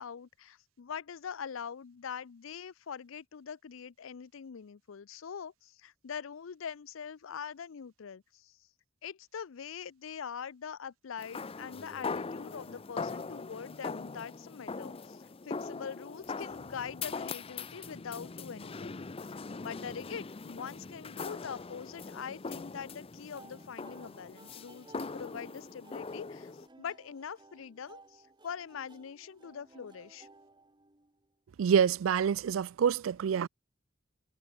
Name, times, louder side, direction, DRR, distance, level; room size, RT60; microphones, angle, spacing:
voice 1, 0.0-8.6 9.0-30.3, left 7 dB, 85° left, 0.5 m, -43 dB
sound 1, 11.2-26.7, left 4 dB, 30° left, 0.6 m, -41 dB
sound 2, 23.3-31.3, right 2 dB, 25° right, 2.5 m, -58 dB
voice 2, 31.6-33.5, right 7 dB, 85° right, 0.4 m, -27 dB
head